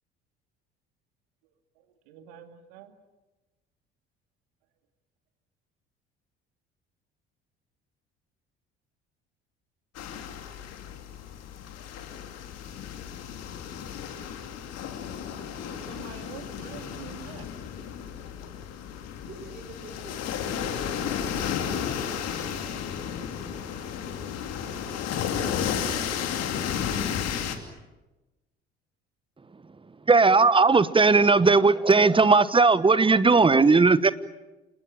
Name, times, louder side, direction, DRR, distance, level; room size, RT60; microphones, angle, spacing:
voice 1, 1.8-3.0 15.6-17.5, right 10 dB, 65° right, 8 dB, 2.4 m, -46 dB
sound 1, 9.9-27.6, left 8 dB, 50° left, 2.9 m, -33 dB
voice 2, 19.2-21.6 22.5-26.6, right 2 dB, 30° right, 5 dB, 5.6 m, -50 dB
voice 3, 30.1-34.1, right 4 dB, 15° right, 17 dB, 1.1 m, -18 dB
28.5 x 19.5 x 8.9 m, 1.1 s
figure-of-eight pair, 55°, 32 cm